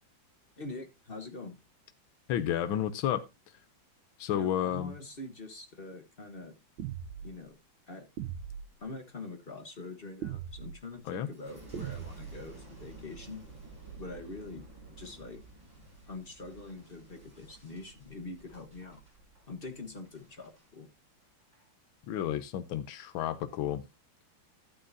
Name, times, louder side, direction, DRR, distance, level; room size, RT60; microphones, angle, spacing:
voice 1, 0.6-1.6 4.3-6.5 7.2-7.6 7.9-8.0 8.8-13.5 14.0-14.7 15.0-15.4 15.8-19.0 19.5-20.9, left 3 dB, 35° left, 1.2 m, -44 dB
voice 2, 2.3-3.2 4.2-4.9 11.1-11.3 22.1-23.8, left 10 dB, 90° left, 1.6 m, -31 dB
sound 1, 6.8-7.3 8.2-8.7 10.2-10.8 11.7-12.4, right 10 dB, 75° right, 1.5 m, -39 dB
Boom, 11.3-20.7 21.2-21.7, right 3 dB, 10° right, 5.6 m, -52 dB
12.5 x 8.9 x 2.7 m
omnidirectional pair, 2.1 m